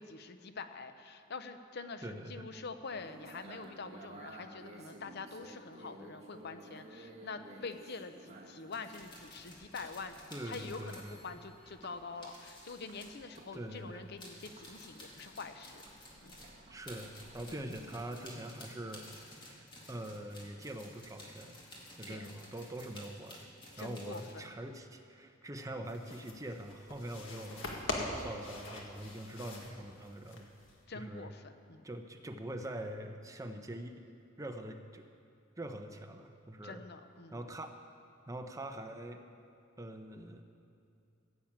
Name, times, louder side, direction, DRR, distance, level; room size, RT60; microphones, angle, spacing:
voice 1, 0.0-10.1 10.4-15.8 16.2-16.3 22.1-22.3 23.8-24.5 30.9-31.8 36.6-37.4, left 4 dB, 55° left, 9 dB, 0.7 m, -45 dB
voice 2, 2.0-2.5 10.3-11.4 13.5-14.1 16.7-19.0 19.5-19.6 19.9-21.6 22.0-23.5 23.8-27.7 27.9-30.5 30.9-31.3 31.8-34.1 34.4-35.0 35.6-36.8 37.3-37.8 38.3-39.2 39.8-40.4, right 1 dB, 15° right, 6 dB, 0.7 m, -44 dB
sound 1, 2.8-18.0, right 2 dB, 35° right, 1.8 m, -55 dB
sound 2, 8.7-13.8 14.2-24.3, left 1 dB, 25° left, 2.2 m, -53 dB
sound 3, 25.9-30.8, left 2 dB, 70° left, 1.9 m, -43 dB
15.0 x 7.3 x 8.7 m, 2.6 s
head